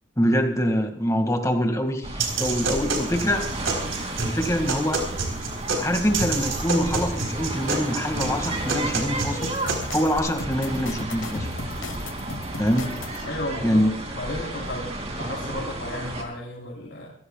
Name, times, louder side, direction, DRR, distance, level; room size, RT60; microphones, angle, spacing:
voice 1, 0.2-3.4 4.2-5.2 5.7-9.5 9.9-11.5 12.6-13.0 13.6-13.9, equal, 15° left, 4 dB, 2.1 m, -24 dB
sound 1, 2.0-16.2, right 2 dB, 35° right, 2.9 m, -33 dB
sound 2, 2.2-10.2, right 3 dB, 75° right, 4.1 m, -29 dB
sound 3, 9.4-13.2, left 2 dB, 90° left, 1.3 m, -37 dB
voice 2, 13.2-13.8 14.1-17.1, left 1 dB, 60° left, -4 dB, 4.2 m, -33 dB
26.0 x 16.5 x 2.4 m, 0.64 s
head